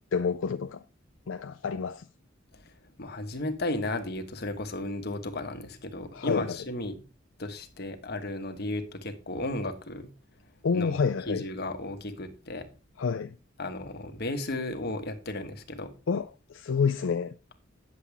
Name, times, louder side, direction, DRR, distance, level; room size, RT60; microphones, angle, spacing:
voice 1, 0.1-0.8 1.3-2.0 6.1-6.6 10.6-11.4 13.0-13.3 16.1-17.3, left 5 dB, 70° left, 0.4 m, -28 dB
voice 2, 3.0-7.0 7.4-10.1 10.7-11.0 11.3-12.7 13.6-15.9, left 2 dB, 55° left, 1.4 m, -34 dB
9.9 x 7.5 x 3.5 m
head